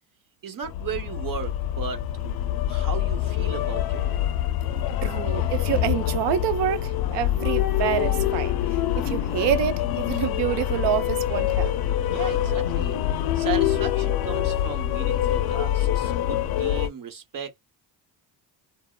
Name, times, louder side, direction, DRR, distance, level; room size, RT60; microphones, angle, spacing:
voice 1, 0.4-2.0 2.7-4.3 12.1-17.5, right 7 dB, 50° right, 1.1 m, -35 dB
sound 1, 0.6-16.9, left 11 dB, 60° left, 0.5 m, -25 dB
voice 2, 5.0-8.6 9.0-11.7, right 10 dB, 75° right, 0.6 m, -27 dB
2.8 x 2.0 x 2.3 m
cardioid pair, 85°, 43 cm